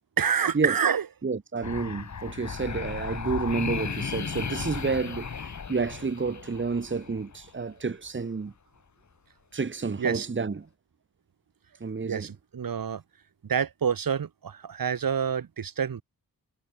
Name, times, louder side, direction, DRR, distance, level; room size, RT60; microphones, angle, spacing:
voice 1, 0.2-1.0 10.0-10.3 12.0-13.0 13.5-16.0, right 7 dB, 70° right, 4.7 m, -27 dB
voice 2, 1.2-8.5 9.5-10.7 11.8-12.3, right 4 dB, 35° right, 2.5 m, -30 dB
sound 1, 1.6-7.5, left 6 dB, 50° left, 4.0 m, -35 dB
wide cardioid pair, 135°, 36 cm